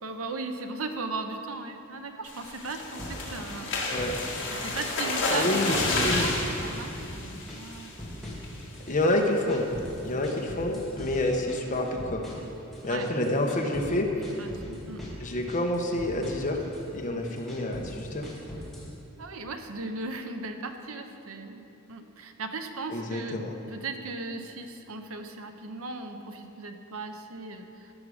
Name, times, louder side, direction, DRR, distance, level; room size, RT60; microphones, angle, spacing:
voice 1, 0.0-3.8 4.5-7.9 9.5-9.6 12.9-13.1 14.4-15.1 17.1-17.3 19.2-27.9, right 3 dB, 90° right, 6 dB, 0.8 m, -37 dB
sound 1, 2.2-8.0 8.4-8.7 9.0-9.1 9.5-9.8, left 2 dB, 60° left, 1.8 m, -31 dB
sound 2, 3.0-4.5 4.7-6.0 6.2-7.2 7.5-8.9 9.2-13.9 14.2-15.2 15.5-16.8 17.2-18.9, left 1 dB, ahead, 2.0 m, -41 dB
voice 2, 3.9-4.2 5.3-5.8 6.0-6.3 8.9-9.7 10.0-12.2 12.8-14.1 15.2-16.6 16.9-18.3 22.9-23.5, left 1 dB, 40° left, 2 dB, 1.0 m, -28 dB
15.0 x 6.3 x 4.9 m, 2.8 s
head